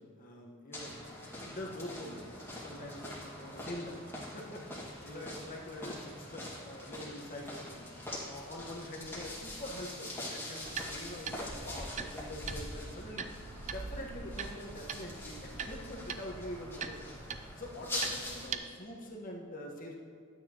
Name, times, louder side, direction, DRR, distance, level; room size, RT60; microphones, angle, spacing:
voice 1, 0.0-7.9 8.3-19.9, left 1 dB, 40° left, -1 dB, 1.4 m, -45 dB
sound 1, 0.7-18.5, left 1 dB, 10° left, 2.0 m, -44 dB
sound 2, 10.6-18.6, right 5 dB, 35° right, 0.4 m, -43 dB
12.5 x 9.1 x 3.0 m, 2.2 s
head